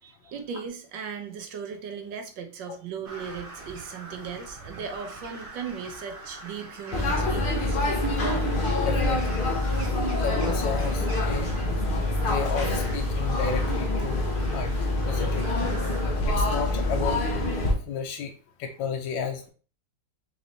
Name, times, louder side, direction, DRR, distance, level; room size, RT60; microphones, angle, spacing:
voice 1, 0.0-7.8, right 6 dB, 75° right, 5 dB, 1.5 m, -37 dB
Crow, 3.0-16.1, right 2 dB, 55° right, 0.6 m, -44 dB
sound 1, 6.9-17.7, left 2 dB, 45° left, 0.7 m, -26 dB
voice 2, 8.8-9.4 10.2-11.5 12.2-14.2 14.5-14.7 15.0-15.5 16.2-17.2 17.9-18.3 18.6-19.5, left 6 dB, 80° left, 3 dB, 1.3 m, -32 dB
4.1 x 4.0 x 3.0 m, 0.38 s
omnidirectional pair, 2.0 m